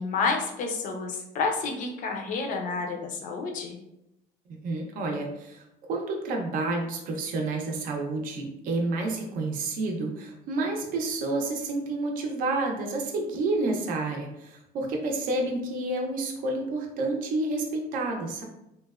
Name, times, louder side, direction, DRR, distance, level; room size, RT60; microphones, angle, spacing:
voice 1, 0.0-3.8, left 4 dB, 50° left, 3 dB, 0.5 m, -29 dB
voice 2, 4.5-18.4, right 2 dB, 55° right, 1 dB, 0.5 m, -29 dB
2.9 x 2.1 x 2.3 m, 0.86 s
cardioid pair, 160°, 17 cm